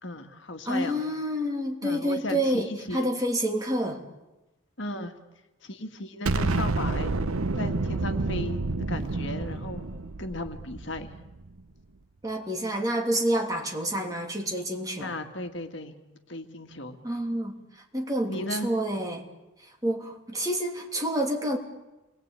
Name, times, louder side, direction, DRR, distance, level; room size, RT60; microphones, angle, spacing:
voice 1, 0.0-1.0 1.8-3.1 4.8-5.1 5.6-7.1 7.6-8.6 8.9-9.8 10.2-11.1 15.0-15.9 16.3-17.0 18.3-18.7, left 1 dB, 60° left, 6 dB, 1.9 m, -35 dB
voice 2, 0.6-4.0 12.2-15.1 17.0-19.2 19.6-21.6, right 1 dB, 15° right, 2 dB, 3.0 m, -28 dB
Explosion, 6.3-11.4, right 2 dB, 90° right, 1.0 m, -29 dB
29.0 x 21.5 x 8.9 m, 1.0 s
head